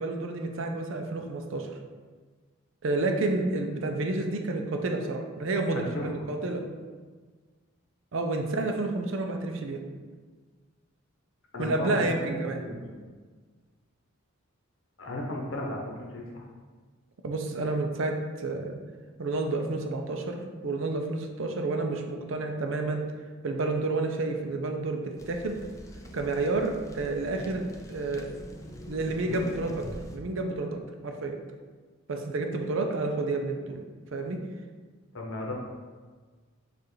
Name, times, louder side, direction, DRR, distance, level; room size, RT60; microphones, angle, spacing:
voice 1, 0.0-1.7 2.8-6.7 8.1-9.8 11.6-12.6 17.2-18.8 19.2-23.0 23.4-25.6 26.1-28.3 28.9-29.8 30.1-31.4 32.1-33.8 34.1-34.4, right 2 dB, 65° right, 3 dB, 0.5 m, -30 dB
voice 2, 5.7-6.3 11.5-13.0 15.0-16.5 29.3-29.7 35.1-35.5, left 1 dB, 60° left, -1 dB, 0.9 m, -36 dB
sound 1, 25.2-30.2, left 1 dB, 15° left, 0.3 m, -44 dB
6.8 x 2.5 x 3.1 m, 1.4 s
head